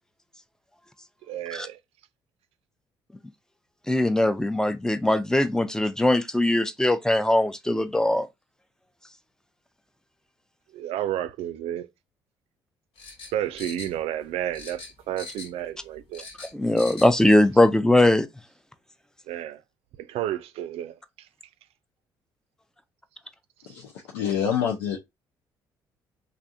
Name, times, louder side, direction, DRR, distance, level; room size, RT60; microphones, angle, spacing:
voice 1, 1.3-1.8 10.7-11.9 13.3-16.3 19.3-19.6 20.0-20.9 24.3-24.5, right 12 dB, 65° right, 0.4 m, -31 dB
voice 2, 3.9-8.3 16.4-18.3, left 1 dB, 5° left, 0.5 m, -21 dB
sound 1, 13.0-14.3 14.5-15.7 15.9-17.1 17.5-17.6, left 3 dB, 60° left, 1.8 m, -41 dB
voice 3, 23.7-25.0, left 8 dB, 75° left, 0.6 m, -27 dB
3.3 x 2.6 x 2.6 m
hypercardioid pair, 50°, 11 cm